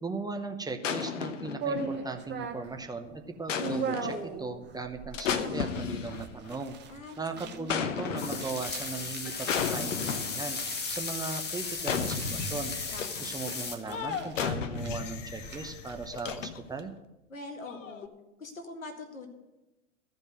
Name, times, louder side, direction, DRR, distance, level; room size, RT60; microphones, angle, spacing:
voice 1, 0.0-6.8 7.2-10.6 10.9-12.8 13.2-16.9, right 3 dB, 10° right, 5 dB, 0.8 m, -38 dB
sound 1, 0.8-2.3 3.5-4.3 5.1-6.5 7.7-8.7 9.5-10.5 11.8-13.3 13.9-16.8 17.6-18.1, left 7 dB, 70° left, 1.0 m, -34 dB
sound 2, 1.6-16.4, right 4 dB, 25° right, 1.2 m, -41 dB
voice 2, 6.9-7.7 12.9-13.3 17.3-18.1 18.4-19.3, left 3 dB, 85° left, 4 dB, 2.1 m, -43 dB
sound 3, 8.2-13.8, left 4 dB, 25° left, 1.7 m, -36 dB
14.5 x 5.3 x 7.5 m, 1.0 s
figure-of-eight pair, 95°, 39 cm